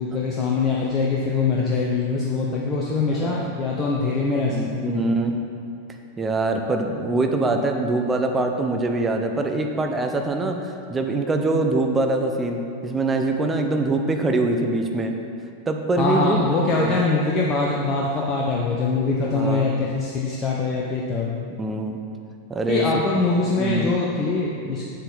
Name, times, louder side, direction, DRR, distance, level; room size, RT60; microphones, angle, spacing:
voice 1, 0.0-5.0 16.0-21.4 22.7-24.9, left 3 dB, 25° left, -3 dB, 0.9 m, -23 dB
voice 2, 3.1-3.5 4.5-5.4 6.2-15.1 15.7-17.0 19.3-19.7 21.6-22.0 22.5-22.9 23.6-23.9, right 2 dB, 15° right, 4 dB, 0.8 m, -24 dB
8.3 x 7.8 x 4.1 m, 2.6 s
figure-of-eight pair, 90°, 0 cm